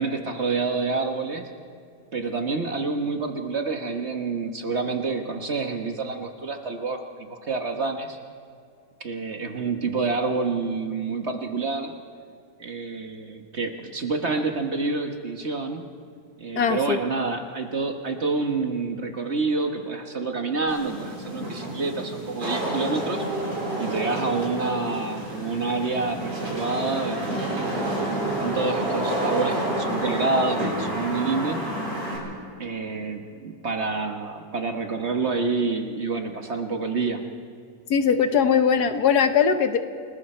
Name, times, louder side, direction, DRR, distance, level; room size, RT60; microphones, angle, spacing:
voice 1, 0.0-1.5 2.1-8.2 9.0-12.0 12.6-15.9 16.4-23.2 23.8-27.6 27.9-31.6 32.6-37.2, right 4 dB, 40° right, 5 dB, 1.3 m, -28 dB
voice 2, 16.6-17.0 37.9-39.8, left 7 dB, 65° left, 9 dB, 1.4 m, -20 dB
Wind / Rain, 20.7-32.2, right 1 dB, 80° right, 5.8 m, -29 dB
29.5 x 20.5 x 4.4 m, 2.3 s
omnidirectional pair, 1.9 m